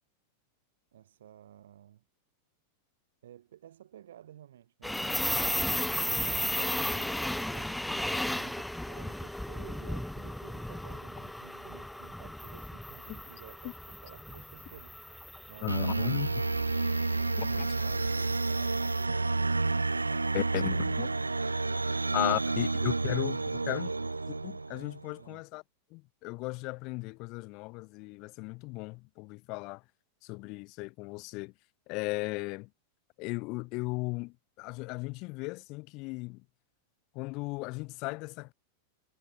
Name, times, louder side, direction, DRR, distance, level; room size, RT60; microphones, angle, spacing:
voice 1, 0.9-2.0 3.2-7.2 7.5-15.2 15.5-16.5 17.0-20.9 21.7-22.7 25.2-25.4, right 11 dB, 60° right, 5.2 m, -53 dB
sound 1, 4.8-18.9, left 1 dB, 5° left, 2.1 m, -35 dB
voice 2, 15.6-16.3 17.4-17.7 20.3-21.1 22.1-23.9 24.4-25.6 25.9-29.8 30.2-31.5 31.9-32.7 33.2-36.4 37.1-38.5, left 26 dB, 40° left, 1.4 m, -36 dB
sound 2, 15.7-25.1, right 3 dB, 80° right, 0.5 m, -30 dB
figure-of-eight pair, 90°, 0 cm